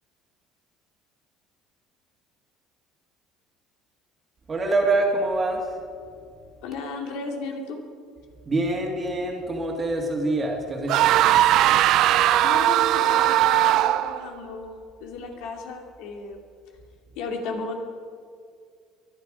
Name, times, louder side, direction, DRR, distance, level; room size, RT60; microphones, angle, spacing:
voice 1, 4.5-5.8 8.5-11.1, right 2 dB, 25° right, 0 dB, 2.1 m, -25 dB
voice 2, 6.6-7.8 12.4-16.4 17.2-17.8, left 3 dB, 75° left, 3 dB, 2.5 m, -34 dB
sound 1, 10.9-14.2, right 13 dB, 60° right, 0.5 m, -19 dB
23.0 x 11.0 x 5.0 m, 2.2 s
cardioid pair, 115°, 0 cm